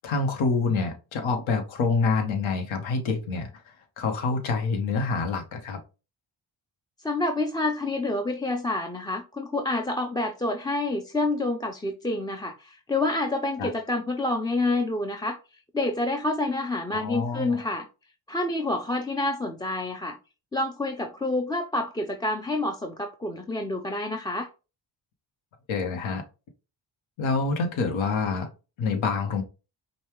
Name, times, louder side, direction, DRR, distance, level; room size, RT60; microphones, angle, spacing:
voice 1, 0.0-5.8 13.6-13.7 16.9-17.6 25.7-26.2 27.2-28.5 28.8-29.4, left 4 dB, 85° left, 1.0 m, -27 dB
voice 2, 7.0-15.4 15.7-17.9 18.3-20.2 20.5-24.5, left 2 dB, 10° left, 0.3 m, -28 dB
5.3 x 2.3 x 3.0 m
cardioid pair, 80°, 46 cm